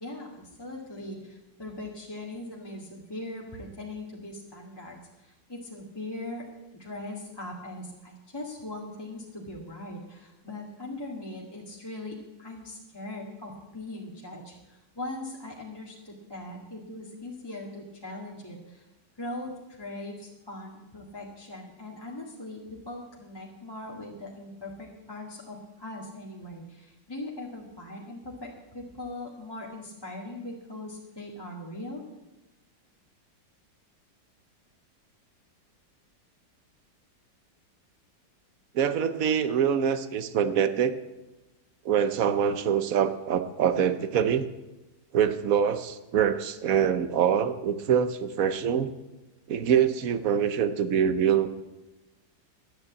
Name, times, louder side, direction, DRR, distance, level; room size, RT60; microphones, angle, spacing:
voice 1, 0.0-6.4 6.8-18.9 19.2-32.0, left 2 dB, 15° left, -4 dB, 1.8 m, -40 dB
voice 2, 38.7-41.0 41.8-44.5 45.1-48.9 49.5-51.5, right 8 dB, 60° right, 12 dB, 1.1 m, -24 dB
11.5 x 9.7 x 8.4 m, 1.0 s
omnidirectional pair, 2.0 m